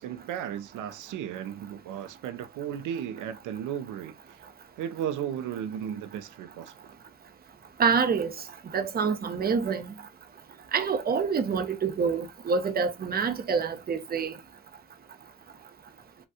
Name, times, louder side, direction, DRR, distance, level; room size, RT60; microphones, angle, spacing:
voice 1, 0.0-4.4 4.8-6.8, right 9 dB, 80° right, 0.5 m, -35 dB
voice 2, 7.8-8.3 8.7-9.9 10.7-14.3, right 5 dB, 30° right, 0.6 m, -26 dB
3.4 x 2.2 x 2.6 m
cardioid pair, 90°, 30 cm